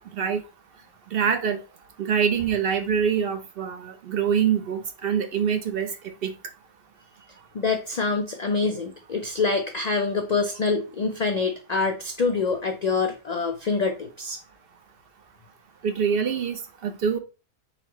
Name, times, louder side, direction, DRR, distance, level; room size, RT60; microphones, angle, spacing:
voice 1, 1.1-1.6 2.0-5.9 6.2-6.3 15.8-17.2, right 7 dB, 60° right, 8 dB, 0.7 m, -25 dB
voice 2, 7.5-14.4, left 4 dB, 90° left, 6 dB, 0.3 m, -25 dB
4.3 x 4.0 x 3.0 m, 0.31 s
omnidirectional pair, 1.4 m